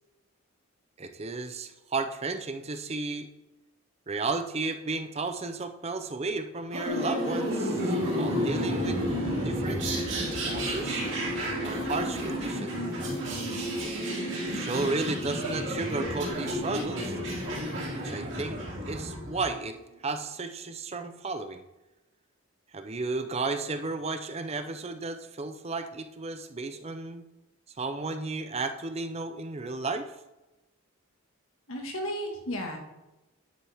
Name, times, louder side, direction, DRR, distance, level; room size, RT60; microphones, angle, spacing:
voice 1, 1.0-3.3 4.1-9.0 9.4-9.9 10.5-11.0 11.6-12.8 14.4-17.1 18.0-18.6 18.8-19.8 20.0-21.6 22.7-27.3 27.8-30.1, right 3 dB, 30° right, 8 dB, 0.5 m, -33 dB
sound 1, 6.7-19.4, equal, 60° right, 3.0 m, -33 dB
sound 2, 6.8-19.6, right 1 dB, 30° left, 2.4 m, -35 dB
voice 2, 31.7-32.8, equal, 75° left, 2 dB, 1.7 m, -33 dB
10.5 x 7.3 x 3.5 m, 1.0 s
head